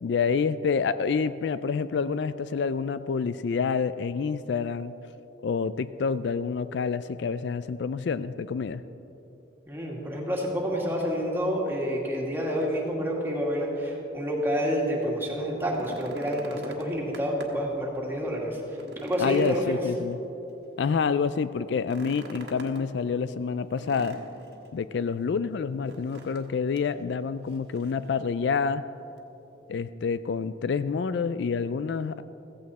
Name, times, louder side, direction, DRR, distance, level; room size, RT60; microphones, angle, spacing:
voice 1, 0.0-4.9 5.4-8.8 19.2-20.2 20.8-24.2 24.7-28.8 29.7-32.2, left 5 dB, 65° left, 14 dB, 0.4 m, -28 dB
voice 2, 9.7-19.8, equal, 10° right, -2 dB, 2.2 m, -29 dB
sound 1, 15.5-17.7 18.1-18.2 18.6-20.5 21.8-22.9 23.8-24.7 25.8-26.5 26.8-26.9 27.5-28.1 29.2-29.3, right 1 dB, 60° right, 1.5 m, -45 dB
15.5 x 15.0 x 4.2 m, 3.0 s
head